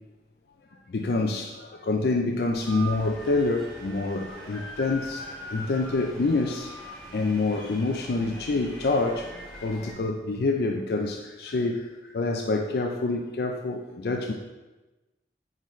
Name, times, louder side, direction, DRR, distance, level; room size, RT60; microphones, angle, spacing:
voice 1, 0.9-5.3 5.5-6.7 7.1-9.3 9.6-14.3, left 3 dB, 65° left, 3 dB, 0.4 m, -27 dB
sound 1, 2.5-9.9, right 1 dB, 5° left, 1.3 m, -42 dB
8.3 x 4.0 x 3.1 m, 1.1 s
head